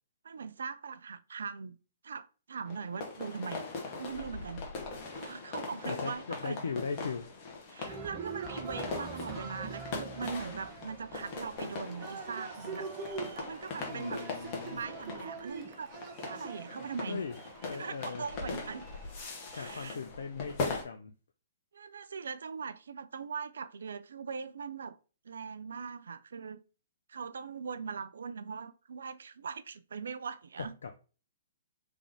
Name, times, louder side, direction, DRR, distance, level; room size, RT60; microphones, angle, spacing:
voice 1, 0.2-1.8 2.0-3.7 4.0-4.6 5.1-6.6 7.7-12.9 13.3-14.2 14.7-15.9 16.2-17.2 17.7-18.9 19.5-20.0 21.7-25.0 25.2-26.6 27.1-30.7, right 6 dB, 70° right, 0.4 m, -41 dB
sound 1, 2.7-20.8, left 4 dB, 35° left, 1.2 m, -41 dB
voice 2, 5.8-7.3 13.9-14.8 17.1-17.4 17.6-18.3 19.5-21.1 30.6-31.0, left 5 dB, 70° left, 0.4 m, -39 dB
Cheering, 7.8-19.8, right 5 dB, 30° right, 0.9 m, -44 dB
3.6 x 3.4 x 3.3 m
figure-of-eight pair, 120°, 0 cm